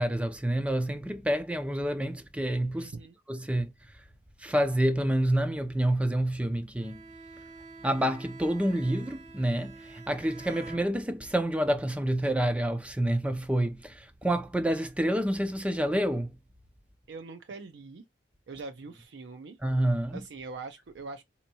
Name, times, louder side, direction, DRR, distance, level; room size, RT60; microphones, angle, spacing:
voice 1, 0.0-2.9 3.3-3.7 4.4-7.0 7.8-16.3 19.6-20.2, right 1 dB, 5° right, 0.4 m, -28 dB
voice 2, 2.8-3.2 17.1-18.0 18.5-19.6 20.1-21.2, right 3 dB, 75° right, 0.5 m, -42 dB
Bowed string instrument, 6.8-11.4, right 3 dB, 40° right, 0.8 m, -47 dB
4.3 x 2.8 x 2.7 m
head